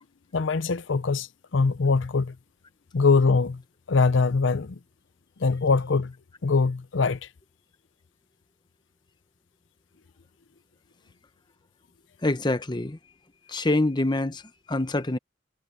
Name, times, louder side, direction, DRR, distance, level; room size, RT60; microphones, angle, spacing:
voice 1, 0.3-1.3 1.5-2.3 2.9-3.6 3.9-4.8 5.4-6.1 6.4-7.2, left 4 dB, 70° left, 0.6 m, -22 dB
voice 2, 12.2-13.0 13.5-14.4 14.7-15.2, left 2 dB, 20° left, 0.8 m, -25 dB
head